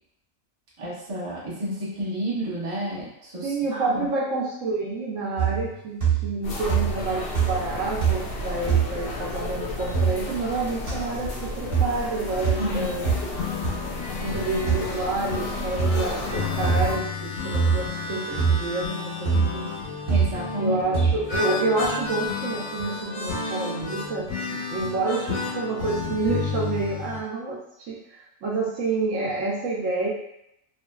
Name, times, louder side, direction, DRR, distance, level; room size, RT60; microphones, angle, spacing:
voice 1, 0.8-4.1 12.6-13.1 20.1-20.8, equal, 30° right, -7 dB, 0.6 m, -30 dB
voice 2, 3.4-13.1 14.2-19.7 20.6-30.1, right 3 dB, 75° right, -3 dB, 1.0 m, -28 dB
sound 1, 5.4-5.7 6.0-6.4 6.7-7.1 7.3-7.7 8.0-8.3 8.7-8.9 9.9-10.1 10.9-11.0 11.7-11.9 12.4-12.6 13.0-13.2 13.6-13.7 14.7-14.8 15.8-16.0 16.6-16.9 17.5-17.8 18.4-18.6 19.3-19.5 20.1-20.3 20.9-21.2, right 6 dB, 50° right, 1.0 m, -22 dB
sound 2, 6.4-17.0, left 2 dB, 60° left, 0.6 m, -33 dB
sound 3, 12.8-27.2, left 4 dB, 85° left, 1.0 m, -32 dB
2.7 x 2.4 x 2.2 m, 0.79 s
omnidirectional pair, 1.4 m